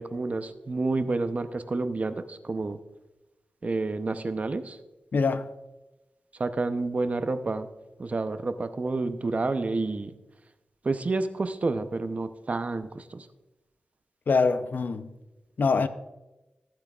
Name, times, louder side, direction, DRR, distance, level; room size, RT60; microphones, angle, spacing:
voice 1, 0.0-2.8 3.6-4.8 6.4-7.7 8.0-10.1 10.8-13.3, right 3 dB, 45° right, 0.7 m, -29 dB
voice 2, 5.1-5.5 14.3-15.1 15.6-15.9, left 4 dB, 65° left, 0.6 m, -24 dB
14.5 x 8.6 x 2.4 m
wide cardioid pair, 80°, 3 cm